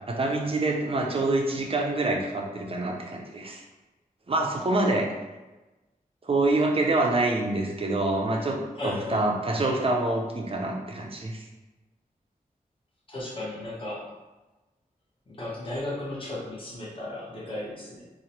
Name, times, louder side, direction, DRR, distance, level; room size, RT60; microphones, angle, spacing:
voice 1, 0.0-3.6 4.3-5.0 6.2-8.6 8.8-11.4, right 2 dB, 40° right, 1 dB, 0.4 m, -26 dB
voice 2, 8.8-9.2 13.1-14.0 15.3-18.0, left 1 dB, 35° left, -6 dB, 0.8 m, -35 dB
3.0 x 2.0 x 2.7 m, 1.1 s
wide cardioid pair, 100°, 15 cm